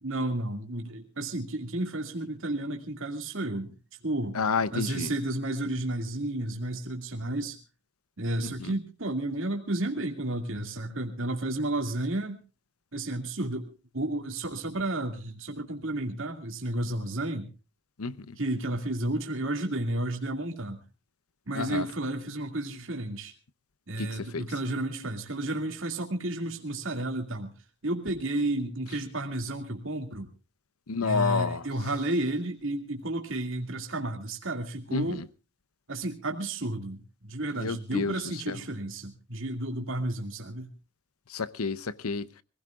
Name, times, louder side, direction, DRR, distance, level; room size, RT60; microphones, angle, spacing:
voice 1, 0.0-3.8 4.0-4.4 4.7-7.6 8.2-12.4 12.9-17.5 18.4-20.8 21.5-23.3 23.9-27.5 27.8-30.3 31.0-35.2 35.9-40.7, right 1 dB, 65° right, 2.4 m, -32 dB
voice 2, 4.3-5.1 8.4-8.7 18.0-18.4 21.5-21.9 24.0-24.4 30.9-31.6 34.9-35.2 37.6-38.1 38.5-38.6 41.3-42.3, left 4 dB, 85° left, 0.8 m, -30 dB
25.5 x 16.5 x 2.5 m
head